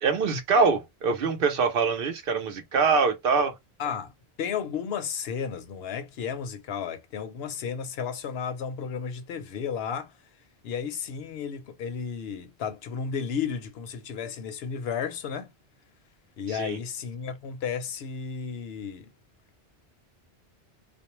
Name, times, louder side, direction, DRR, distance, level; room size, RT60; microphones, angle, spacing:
voice 1, 0.0-3.5 16.5-16.8, right 4 dB, 65° right, 0.9 m, -24 dB
voice 2, 3.8-4.1 4.4-10.1 10.6-15.5 16.4-19.1, left 7 dB, 75° left, 0.9 m, -33 dB
2.4 x 2.0 x 2.9 m
omnidirectional pair, 1.0 m